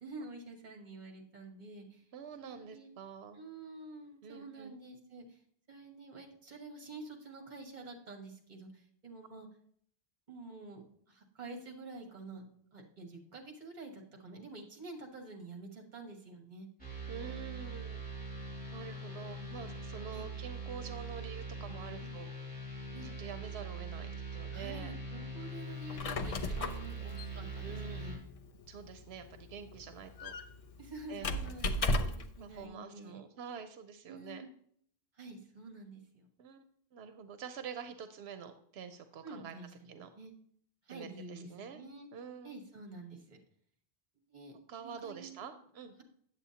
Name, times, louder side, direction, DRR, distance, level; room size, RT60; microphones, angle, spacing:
voice 1, 0.0-2.0 2.4-2.9 3.3-5.4 5.7-9.5 10.3-12.5 12.7-16.7 20.1-20.3 22.9-23.1 24.5-28.2 30.8-33.2 34.1-34.5 35.2-36.3 39.2-40.3 40.9-42.1 42.4-43.4 44.3-45.7, right 2 dB, 45° right, 2 dB, 1.5 m, -48 dB
voice 2, 2.1-3.4 4.2-4.8 17.1-18.0 18.7-22.3 23.0-24.9 27.6-28.0 28.7-30.3 31.1-31.3 32.4-34.4 36.4-36.6 36.9-39.5 39.9-40.1 40.9-41.8 42.1-42.6 44.7-45.9, right 6 dB, 90° right, 9 dB, 0.9 m, -46 dB
sound 1, 16.8-28.2, right 2 dB, 10° left, 2.7 m, -42 dB
Squeak, 25.7-32.4, left 1 dB, 45° left, 0.5 m, -37 dB
8.2 x 7.9 x 2.8 m, 0.64 s
omnidirectional pair, 1.0 m